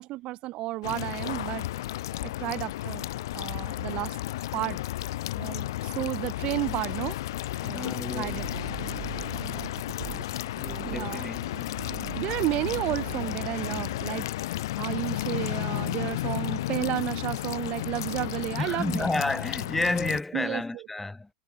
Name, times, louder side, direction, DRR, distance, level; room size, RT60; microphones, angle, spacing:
voice 1, 0.0-1.7 2.2-3.1 3.3-4.2 4.5-4.8 5.4-7.2 7.6-8.8 10.9-11.3 12.1-14.3 14.8-19.1 20.3-20.8, right 18 dB, 45° right, 1.2 m, -32 dB
sound 1, 0.8-20.2, left 15 dB, 75° left, 2.7 m, -33 dB
voice 2, 7.7-8.4 10.6-11.8 18.6-21.3, left 2 dB, 10° left, 0.9 m, -31 dB
sound 2, 7.9-14.2, right 25 dB, 65° right, 0.9 m, -42 dB
supercardioid pair, 125°, 2 cm